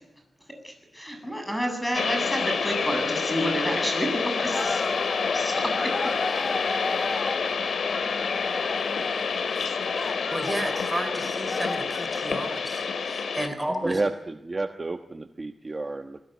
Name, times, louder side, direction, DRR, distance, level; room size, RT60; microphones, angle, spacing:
voice 1, 0.6-4.8 5.3-6.2, equal, 5° left, 4 dB, 7.8 m, -30 dB
sound 1, 1.9-13.5, left 5 dB, 80° left, 2.3 m, -28 dB
sound 2, 4.5-10.9 11.3-12.2, left 3 dB, 30° left, 1.3 m, -34 dB
voice 2, 10.0-14.0, right 1 dB, 10° right, 8 dB, 4.6 m, -32 dB
voice 3, 13.8-16.2, right 2 dB, 30° right, 6 dB, 1.2 m, -31 dB
25.5 x 21.0 x 9.5 m, 0.89 s
wide cardioid pair, 120°, 0 cm